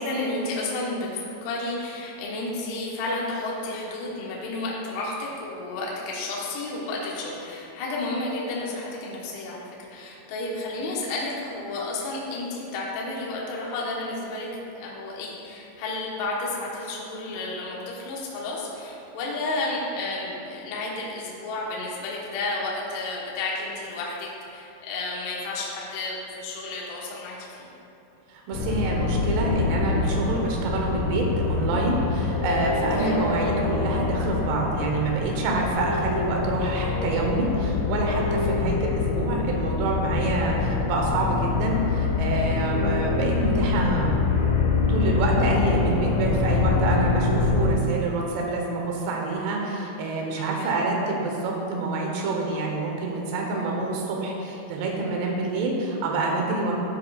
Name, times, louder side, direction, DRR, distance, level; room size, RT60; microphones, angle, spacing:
voice 1, 0.0-14.5 14.7-27.7 33.0-33.2 50.4-50.7, left 2 dB, 70° left, -4 dB, 2.9 m, -32 dB
voice 2, 28.3-44.1 44.9-56.7, right 2 dB, 70° right, 0 dB, 2.9 m, -27 dB
sound 1, 28.5-47.7, left 4 dB, 85° left, 3.1 m, -25 dB
13.0 x 7.5 x 2.4 m, 2.8 s
omnidirectional pair, 5.7 m